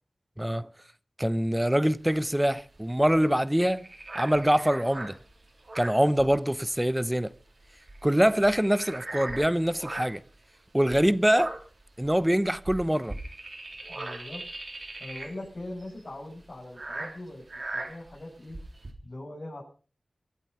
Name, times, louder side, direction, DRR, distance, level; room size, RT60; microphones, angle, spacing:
voice 1, 0.4-0.7 1.2-3.9 4.1-5.2 5.7-7.3 8.0-10.2 10.7-11.5 12.0-13.2, equal, 10° right, 0.9 m, -24 dB
sound 1, 1.9-6.8 7.1-7.3 7.6-10.3 10.8-18.9, right 2 dB, 50° right, 3.7 m, -40 dB
voice 2, 13.9-14.4 15.0-17.4 17.7-18.6 19.0-19.6, left 1 dB, 45° left, 6.9 m, -41 dB
24.0 x 8.4 x 5.6 m
wide cardioid pair, 85°, 0 cm